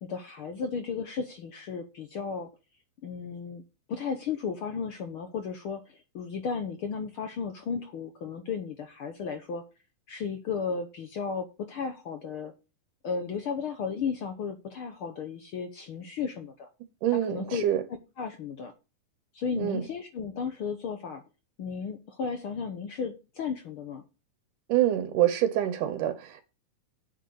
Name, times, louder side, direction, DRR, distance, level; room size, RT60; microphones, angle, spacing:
voice 1, 0.0-2.5 3.0-3.6 3.9-9.6 10.1-12.5 13.0-16.7 17.1-17.6 18.2-18.7 19.3-21.2 21.6-24.0, left 6 dB, 75° left, 1.2 m, -34 dB
voice 2, 17.0-17.8 19.6-19.8 24.7-26.4, right 12 dB, 75° right, 2.5 m, -26 dB
8.2 x 6.6 x 6.3 m
omnidirectional pair, 3.8 m